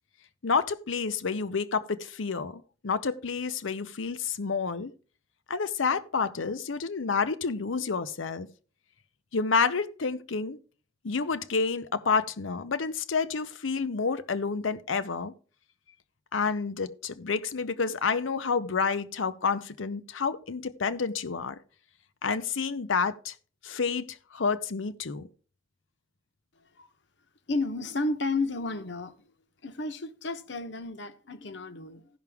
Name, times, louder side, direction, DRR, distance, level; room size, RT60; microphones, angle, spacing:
voice 1, 0.4-4.9 5.5-8.5 9.3-10.6 11.0-15.3 16.3-21.6 22.2-23.3 23.6-25.3, left 5 dB, 90° left, 0.7 m, -29 dB
voice 2, 27.5-29.1 29.6-32.1, left 3 dB, 65° left, 0.9 m, -32 dB
15.5 x 5.9 x 3.5 m
head